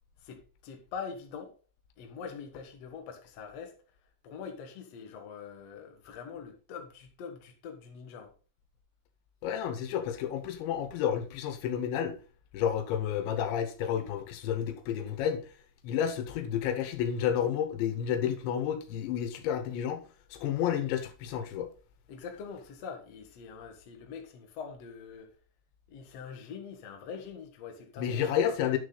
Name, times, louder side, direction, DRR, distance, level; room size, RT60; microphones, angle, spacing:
voice 1, 0.2-1.5 2.0-3.8 4.2-8.3 22.1-25.3 25.9-28.8, left 6 dB, 55° left, 1.9 m, -44 dB
voice 2, 9.4-12.2 12.5-15.4 15.8-20.0 20.3-21.7 28.0-28.8, left 9 dB, 85° left, 3.5 m, -30 dB
9.9 x 6.6 x 4.0 m
omnidirectional pair, 5.1 m